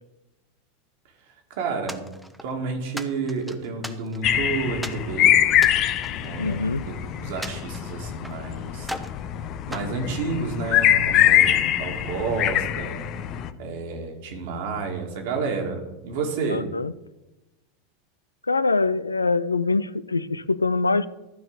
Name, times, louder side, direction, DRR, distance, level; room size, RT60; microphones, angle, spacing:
voice 1, 1.6-2.0 2.4-5.3 6.2-8.9 9.7-13.0 13.6-16.6, right 4 dB, 60° right, 3 dB, 2.1 m, -30 dB
sound 1, 1.9-2.5 3.0-4.4 4.8-5.1 5.5-6.9 7.4-8.4 8.8-9.2 9.7-10.8, equal, ahead, 0.8 m, -38 dB
sound 2, 4.2-13.5, left 11 dB, 45° left, 0.6 m, -23 dB
voice 2, 6.4-6.8 16.5-16.9 18.5-21.1, left 3 dB, 90° left, 16 dB, 0.3 m, -24 dB
12.5 x 4.5 x 6.4 m, 1.0 s
figure-of-eight pair, 85°, 0 cm